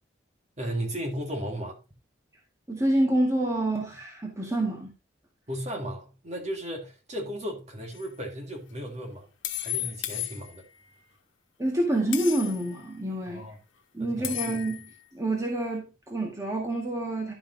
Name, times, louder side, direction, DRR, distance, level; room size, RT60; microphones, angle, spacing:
voice 1, 0.6-1.8 5.5-9.3 9.6-10.6 13.3-13.5 14.0-14.3, equal, 35° right, 2.0 m, -35 dB
voice 2, 2.7-4.9 11.6-13.4 13.9-17.3, right 1 dB, 15° right, 1.7 m, -27 dB
sound 1, 7.9-8.1 9.4-10.9 12.1-12.7 14.2-14.9, left 14 dB, 80° left, 1.2 m, -34 dB
11.5 x 5.9 x 2.7 m
head